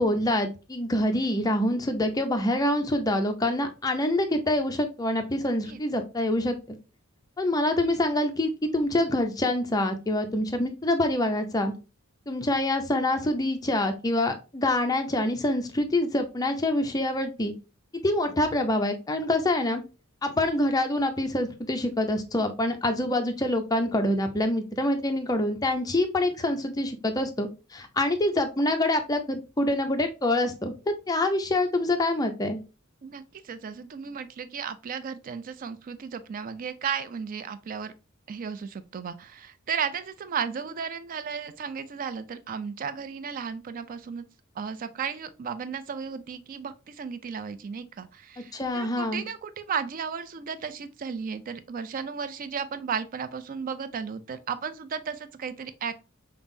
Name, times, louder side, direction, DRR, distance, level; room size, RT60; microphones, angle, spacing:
voice 1, 0.0-6.6 7.4-11.7 12.3-17.5 18.0-19.8 20.2-32.6 48.5-49.2, left 1 dB, 15° left, 0.5 m, -26 dB
voice 2, 33.0-37.9 38.3-44.2 44.6-56.1, right 6 dB, 40° right, 0.3 m, -34 dB
5.3 x 2.0 x 2.6 m
head